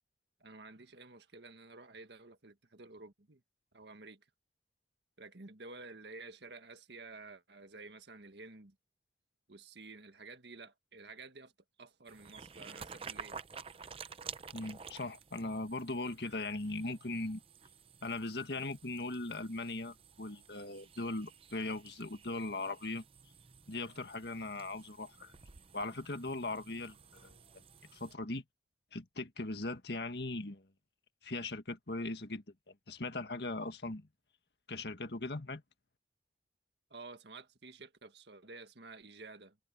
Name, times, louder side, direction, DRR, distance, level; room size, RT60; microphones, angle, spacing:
voice 1, 0.4-3.4 3.7-4.3 5.2-8.7 9.5-11.5 11.8-13.4 36.9-39.6, right 3 dB, 75° right, 1.7 m, -51 dB
sound 1, 12.1-28.1, right 6 dB, 30° right, 0.6 m, -52 dB
voice 2, 14.5-17.4 18.0-23.0 23.7-25.3 25.7-27.4 27.9-28.4 28.9-30.7 31.2-34.1 34.7-35.6, left 2 dB, 70° left, 1.8 m, -39 dB
head